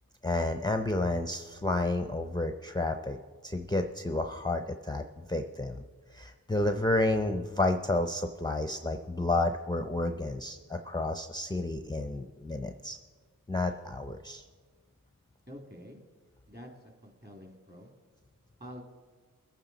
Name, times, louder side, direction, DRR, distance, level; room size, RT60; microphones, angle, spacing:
voice 1, 0.2-3.2 3.4-5.0 5.3-5.8 6.1-13.0 13.5-14.5, left 2 dB, 10° left, 6 dB, 0.6 m, -30 dB
voice 2, 15.5-16.0 16.5-17.9 18.6-18.8, equal, 30° right, 2 dB, 2.6 m, -47 dB
21.0 x 8.9 x 4.1 m, 1.5 s
wide cardioid pair, 40°, 35 cm